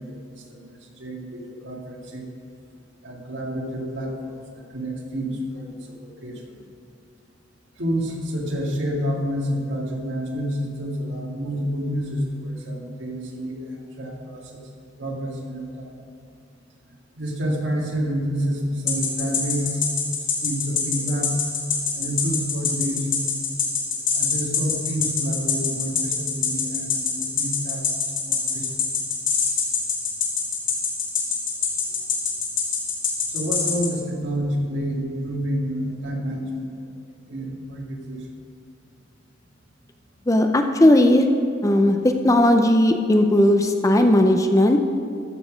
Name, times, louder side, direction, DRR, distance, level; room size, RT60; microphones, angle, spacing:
voice 1, 0.0-2.3 3.0-6.6 7.8-14.6 15.0-15.9 17.2-19.9 20.4-21.3 21.9-23.2 24.2-27.9 28.2-28.8 31.9-32.1 33.3-36.9 37.3-38.3, equal, 70° right, -1 dB, 1.9 m, -29 dB
sound 1, 18.9-33.9, left 7 dB, 85° left, 2.5 m, -23 dB
voice 2, 40.3-41.3 41.6-44.8, left 1 dB, 15° left, 5 dB, 0.5 m, -17 dB
13.5 x 7.0 x 5.1 m, 2.5 s
head